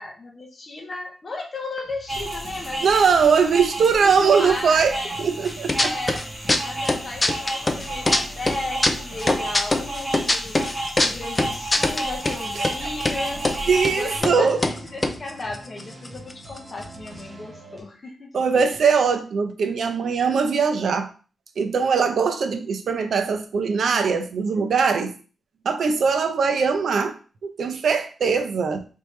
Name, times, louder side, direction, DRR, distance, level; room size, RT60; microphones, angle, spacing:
voice 1, 0.0-2.9 4.0-5.2 5.8-6.3 6.6-10.6 11.0-13.5 13.9-18.7, left 2 dB, 35° left, 0.9 m, -35 dB
sound 1, 1.8-17.8, equal, 30° right, 1.3 m, -43 dB
sound 2, 2.1-14.2, right 1 dB, 5° right, 1.4 m, -32 dB
voice 2, 2.8-6.2 12.5-12.7 13.7-14.6 18.3-21.1 21.6-25.1 25.6-27.2 27.6-28.8, right 5 dB, 65° right, 0.6 m, -21 dB
sound 3, 5.5-6.2 6.5-8.2 8.5-12.4 12.6-12.7 13.0-13.6 13.8-13.9 14.2-14.4 14.6-16.3 16.6-16.7 16.8-17.2, left 2 dB, 15° left, 0.4 m, -22 dB
4.3 x 3.4 x 3.1 m
wide cardioid pair, 160°, 0 cm